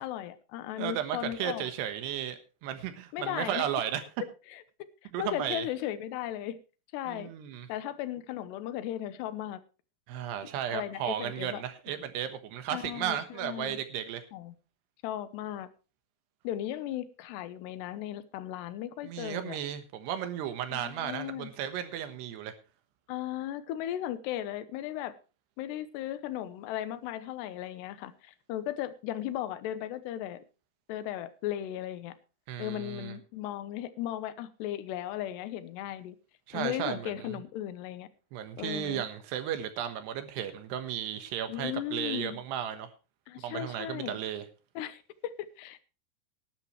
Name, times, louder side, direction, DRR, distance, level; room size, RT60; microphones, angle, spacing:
voice 1, 0.0-1.7 3.1-3.7 4.5-6.6 6.9-7.3 7.7-9.6 10.7-11.6 12.7-13.8 14.3-14.6 15.0-15.7 16.4-19.6 20.7-21.5 23.1-25.1 25.6-30.4 30.9-32.2 32.6-36.2 36.5-38.1 38.6-39.0 41.5-42.4 43.3-44.2 44.8-45.8, left 12 dB, 85° left, 13 dB, 3.1 m, -36 dB
voice 2, 0.8-4.0 5.1-5.7 7.1-7.7 10.1-14.3 19.0-22.5 32.5-33.2 36.5-37.4 38.3-42.9 43.4-44.4, right 10 dB, 80° right, 9 dB, 3.4 m, -34 dB
18.5 x 10.5 x 3.2 m, 0.33 s
omnidirectional pair, 4.8 m